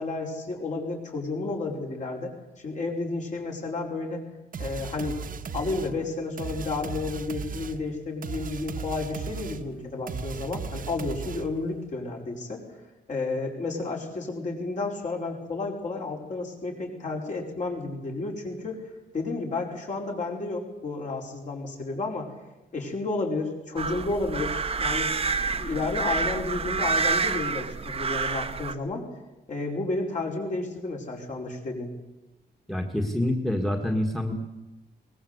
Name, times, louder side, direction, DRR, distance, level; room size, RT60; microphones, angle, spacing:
voice 1, 0.0-4.3 4.6-5.2 5.5-12.6 13.1-18.8 19.1-22.3 22.7-25.1 25.6-29.0 29.5-31.9, left 3 dB, 45° left, 0 dB, 5.1 m, -31 dB
sound 1, 4.5-11.7, right 5 dB, 55° right, 1.5 m, -36 dB
sound 2, 23.8-28.7, right 4 dB, 35° right, 1.2 m, -28 dB
voice 2, 32.7-34.3, left 1 dB, ahead, 4 dB, 2.0 m, -26 dB
22.5 x 20.5 x 8.2 m, 0.99 s
wide cardioid pair, 170°, 17 cm